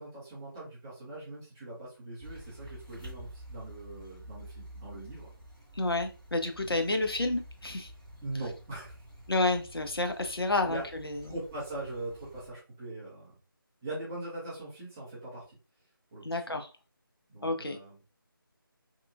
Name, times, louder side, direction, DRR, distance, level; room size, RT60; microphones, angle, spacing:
voice 1, 0.0-5.3 6.6-7.0 8.2-8.9 10.6-10.8 11.2-13.3 13.8-15.6 16.1-16.6 17.3-18.0, right 2 dB, 10° right, -7 dB, 0.5 m, -41 dB
sound 1, 2.2-12.5, equal, 10° left, 0.8 m, -49 dB
voice 2, 5.7-7.9 9.3-11.3 16.2-16.7 17.4-17.8, left 2 dB, 85° left, 5 dB, 0.5 m, -30 dB
2.9 x 2.2 x 2.3 m, 0.32 s
figure-of-eight pair, 160°, 12 cm